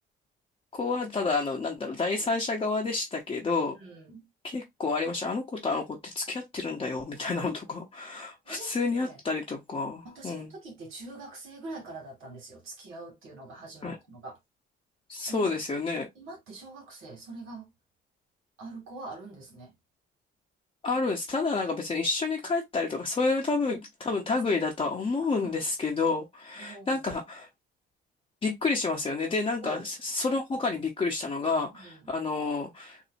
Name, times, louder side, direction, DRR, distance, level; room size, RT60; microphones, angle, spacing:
voice 1, 0.7-3.8 4.4-10.5 13.8-14.0 15.1-16.1 20.8-27.5 28.4-33.0, left 3 dB, 25° left, 0.8 m, -29 dB
voice 2, 3.8-4.3 8.5-9.2 10.0-14.4 15.3-15.6 16.2-17.7 18.6-19.7 25.0-25.2 25.4-25.5 26.6-27.0 29.6-29.8 31.8-32.1, right 2 dB, 75° right, 1.9 m, -44 dB
4.0 x 2.7 x 2.6 m
cardioid pair, 105°, 21 cm